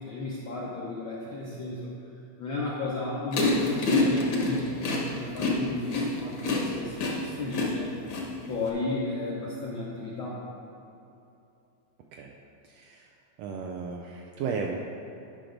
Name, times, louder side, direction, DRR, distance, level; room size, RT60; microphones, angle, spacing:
voice 1, 0.0-1.9 2.4-7.9 8.5-10.4, left 2 dB, 70° left, -6 dB, 1.1 m, -33 dB
sound 1, 3.3-8.7, left 3 dB, 55° left, 1.4 m, -27 dB
voice 2, 12.6-13.1 13.4-14.8, right 5 dB, 80° right, 0 dB, 1.5 m, -34 dB
10.0 x 5.9 x 3.9 m, 2.8 s
omnidirectional pair, 3.4 m